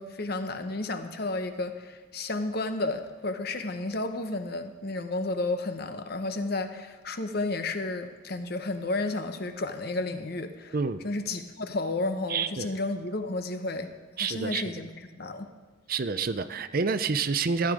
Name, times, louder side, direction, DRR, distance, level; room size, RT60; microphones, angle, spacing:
voice 1, 0.0-10.8 11.0-13.9 14.2-15.5, left 2 dB, 55° left, 8 dB, 0.9 m, -32 dB
voice 2, 10.7-11.0 12.3-12.7 14.2-14.6 15.9-17.7, right 5 dB, 50° right, 12 dB, 0.5 m, -28 dB
14.5 x 10.0 x 5.0 m, 1.3 s
head